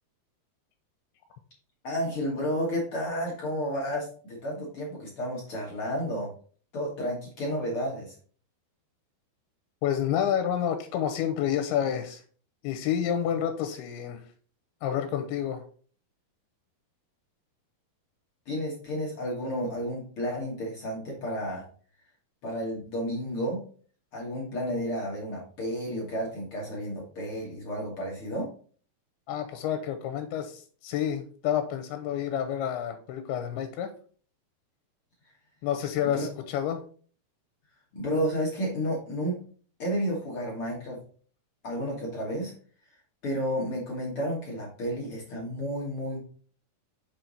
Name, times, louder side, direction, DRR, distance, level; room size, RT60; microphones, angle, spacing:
voice 1, 1.8-6.3 6.7-8.1 18.4-21.6 22.4-23.6 24.1-28.5 36.1-36.3 37.9-39.4 39.8-41.0 41.6-42.5 43.2-46.2, equal, 55° left, -3 dB, 1.6 m, -31 dB
voice 2, 9.8-12.2 12.6-14.2 14.8-15.6 29.3-33.9 35.6-36.8, left 9 dB, 90° left, 7 dB, 2.6 m, -29 dB
6.7 x 4.5 x 4.0 m, 0.43 s
omnidirectional pair, 4.5 m